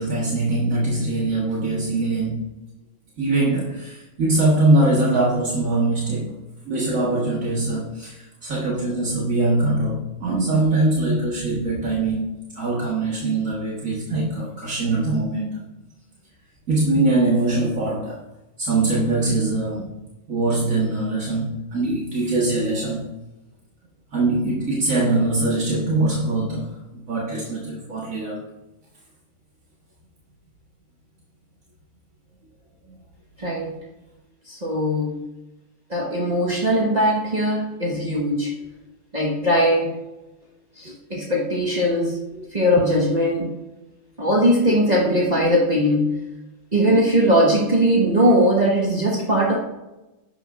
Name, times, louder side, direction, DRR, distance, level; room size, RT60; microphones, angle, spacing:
voice 1, 0.0-2.5 3.2-6.3 6.7-15.5 16.7-18.2 18.6-20.0 20.3-23.0 24.1-28.4, right 2 dB, 70° right, -4 dB, 2.0 m, -22 dB
voice 2, 33.4-33.8 34.5-35.2 35.9-38.5 39.1-39.9 40.8-42.2 42.5-43.5 44.2-46.2 46.7-49.6, equal, 30° right, -4 dB, 1.5 m, -20 dB
11.0 x 9.0 x 2.6 m, 0.99 s
omnidirectional pair, 1.4 m